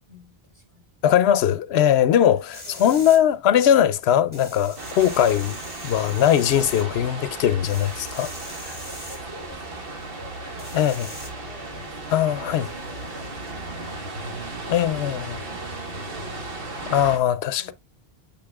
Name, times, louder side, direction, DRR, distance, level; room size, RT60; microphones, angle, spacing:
voice 1, 0.1-0.8 2.1-3.4 8.8-17.2 17.6-17.7, left 1 dB, 30° right, 3.7 m, -48 dB
voice 2, 1.0-5.6 5.8-8.3 8.6-8.7 10.7-11.1 12.1-12.7 14.7-15.2 16.9-17.7, left 10 dB, 85° left, 0.8 m, -20 dB
sound 1, 2.5-3.2 4.3-6.8 7.7-9.2 10.6-11.3, equal, 10° right, 2.0 m, -41 dB
sound 2, 4.8-17.2, right 2 dB, 65° right, 1.6 m, -35 dB
8.7 x 5.3 x 2.3 m
omnidirectional pair, 1.0 m